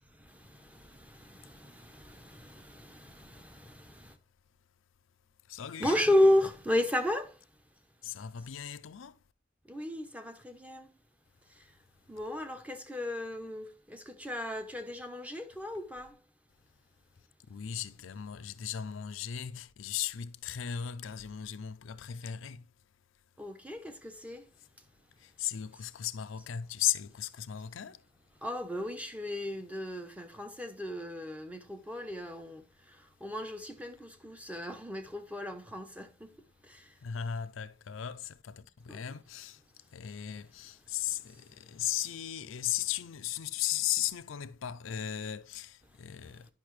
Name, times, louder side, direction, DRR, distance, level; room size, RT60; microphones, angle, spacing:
voice 1, 0.1-4.2 5.8-7.5 9.7-10.9 11.5-11.7 12.1-16.2 23.4-24.5 28.4-36.4 36.6-37.0 38.9-39.0, left 1 dB, 5° right, 0.7 m, -34 dB
voice 2, 5.5-6.0 8.0-9.1 17.5-22.6 25.2-28.0 37.0-39.6 39.9-46.5, left 11 dB, 75° left, 0.5 m, -36 dB
10.5 x 5.6 x 3.1 m
head